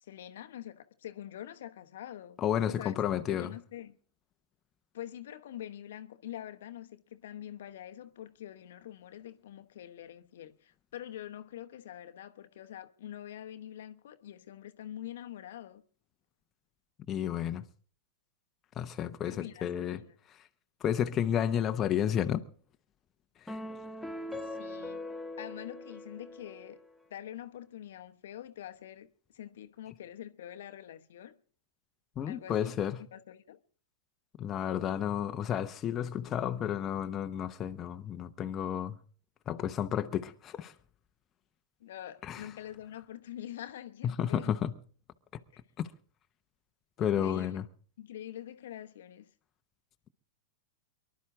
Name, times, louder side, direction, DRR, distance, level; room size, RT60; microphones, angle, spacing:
voice 1, 0.0-2.9 3.3-4.0 4.9-15.8 19.2-20.2 24.4-25.0 25.4-26.8 27.1-31.4 32.3-32.7 33.1-33.6 41.8-44.5 47.0-47.6 48.0-49.3, left 11 dB, 70° left, 0.9 m, -45 dB
voice 2, 2.4-3.5 17.1-17.6 18.8-20.0 20.3-20.4 20.8-22.4 23.5-23.6 32.2-33.0 34.4-39.0 39.5-40.7 42.2-42.5 44.0-44.7 45.8-45.9 47.0-47.6, left 9 dB, 30° left, 0.8 m, -31 dB
sound 1, 23.5-27.0, left 1 dB, 5° left, 1.0 m, -41 dB
24.0 x 11.5 x 3.7 m
hypercardioid pair, 105°, 0 cm